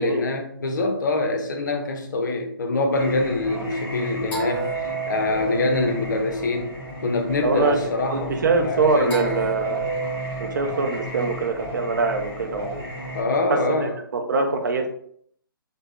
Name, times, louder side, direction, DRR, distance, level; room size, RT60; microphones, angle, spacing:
voice 1, 0.0-6.8 7.0-8.3 8.6-9.4 13.1-13.9, left 2 dB, 50° left, 4 dB, 0.6 m, -24 dB
Singing, 2.9-13.2, right 2 dB, 10° left, 0.7 m, -32 dB
voice 2, 7.4-7.8 8.1-9.8 10.4-12.8 13.5-14.9, right 3 dB, 55° right, 4 dB, 0.5 m, -23 dB
3.3 x 2.0 x 2.4 m, 0.66 s
figure-of-eight pair, 135°, 12 cm